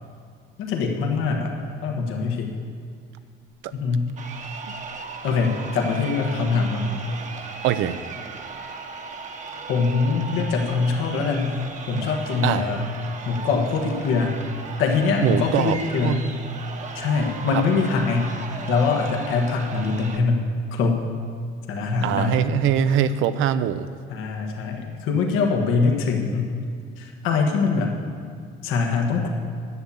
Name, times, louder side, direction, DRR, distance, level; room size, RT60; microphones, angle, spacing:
voice 1, 0.6-1.6 1.8-2.5 3.7-4.1 5.2-6.9 9.7-11.6 11.9-12.8 13.2-14.3 14.8-16.3 16.9-18.3 18.7-21.0 21.7-22.4 24.1-26.5 27.0-28.0 28.6-29.3, left 4 dB, 85° left, 2 dB, 1.5 m, -23 dB
Crowd, 4.1-20.2, right 4 dB, 35° right, 1.0 m, -37 dB
voice 2, 7.6-8.0 11.9-12.1 12.4-12.7 15.2-15.8 16.0-16.2 17.5-17.6 22.0-23.9, right 10 dB, 75° right, 13 dB, 0.6 m, -22 dB
11.0 x 7.1 x 8.3 m, 2.2 s
cardioid pair, 115°, 21 cm